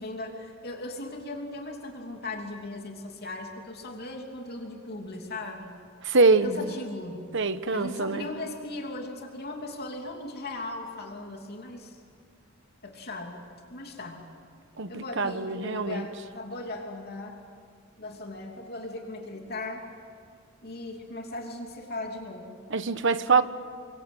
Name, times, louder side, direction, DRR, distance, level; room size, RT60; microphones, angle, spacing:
voice 1, 0.0-5.7 6.3-7.3 7.7-12.0 12.8-13.4 13.7-14.3 14.9-17.4 18.0-19.8 20.6-22.6, left 2 dB, 50° left, 3.0 m, -38 dB
voice 2, 6.0-6.7 7.3-8.3 14.8-16.0 22.7-23.4, right 4 dB, 65° right, 1.2 m, -24 dB
30.0 x 25.0 x 8.0 m
head